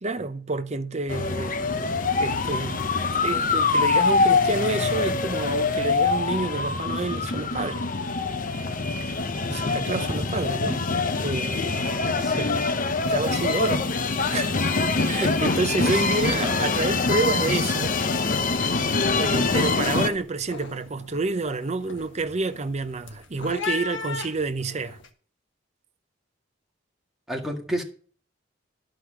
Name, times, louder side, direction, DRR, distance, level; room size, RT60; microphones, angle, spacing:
voice 1, 0.0-2.8 3.2-7.9 9.5-10.9 11.2-14.5 15.0-18.0 19.2-25.0, right 3 dB, 35° right, 0.7 m, -29 dB
sound 1, 1.1-20.1, left 4 dB, 45° left, 0.8 m, -24 dB
voice 2, 12.2-12.5 15.1-16.0 16.4-16.6 27.3-27.8, equal, ahead, 1.8 m, -32 dB
sound 2, 17.7-18.0 18.3-18.7 19.1-25.1, left 4 dB, 80° left, 1.5 m, -37 dB
11.5 x 5.1 x 7.2 m
head